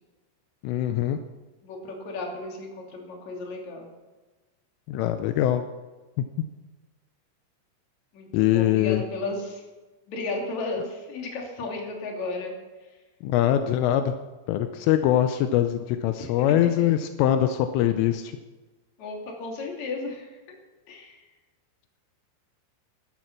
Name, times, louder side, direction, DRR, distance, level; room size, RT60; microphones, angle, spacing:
voice 1, 0.6-1.2 4.9-5.6 8.3-9.0 13.2-14.1 14.5-18.3, left 12 dB, 80° left, 8 dB, 3.3 m, -23 dB
voice 2, 1.6-3.9 8.1-8.3 8.5-9.6 10.1-12.5 16.2-16.3 16.8-16.9 19.0-20.3 20.9-21.2, left 3 dB, 40° left, 1 dB, 3.5 m, -34 dB
16.0 x 12.5 x 6.0 m, 1.2 s
omnidirectional pair, 5.8 m